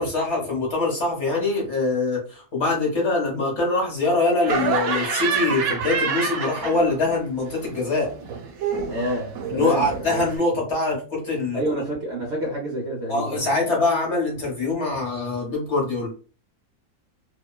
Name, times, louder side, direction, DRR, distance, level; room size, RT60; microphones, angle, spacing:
voice 1, 0.0-8.1 9.5-11.6 13.1-16.1, left 3 dB, 55° left, -2 dB, 1.1 m, -23 dB
Laughter, 4.4-7.2 7.5-10.4, right 6 dB, 90° right, 1.1 m, -27 dB
voice 2, 8.9-10.2 11.5-13.5, right 1 dB, 55° right, -4 dB, 1.0 m, -28 dB
2.9 x 2.1 x 2.2 m, 0.38 s
omnidirectional pair, 1.5 m